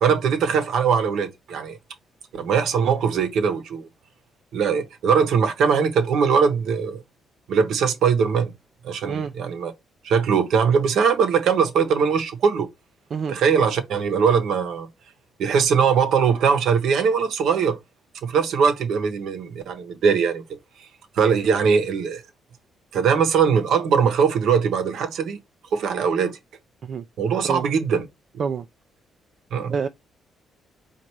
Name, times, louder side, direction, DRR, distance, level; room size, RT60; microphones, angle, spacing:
voice 1, 0.0-1.8 2.3-3.9 4.5-7.0 7.5-8.5 8.8-9.7 10.0-12.7 13.3-14.9 15.4-17.8 18.2-20.9 21.1-22.2 22.9-25.4 25.7-26.4 27.2-28.1 29.5-29.7, right 6 dB, 75° right, 0.9 m, -21 dB
voice 2, 9.1-9.3 13.1-13.4 26.8-27.0 27.5-27.7 28.4-28.7 29.7-29.9, right 6 dB, 55° right, 0.4 m, -27 dB
4.2 x 2.5 x 4.6 m
cardioid pair, 90°, 0 cm